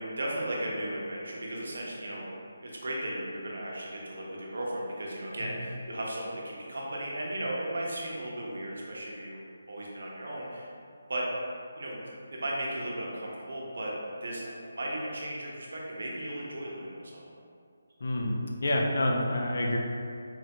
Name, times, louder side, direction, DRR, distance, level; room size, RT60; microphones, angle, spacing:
voice 1, 0.0-2.3 2.6-10.7 11.1-11.3 11.8-12.0 12.3-13.9 14.2-17.2, right 1 dB, 70° right, -3 dB, 0.7 m, -36 dB
voice 2, 18.0-19.8, left 1 dB, 60° left, 0 dB, 0.5 m, -28 dB
4.0 x 2.1 x 2.9 m, 2.3 s
figure-of-eight pair, 155°, 0 cm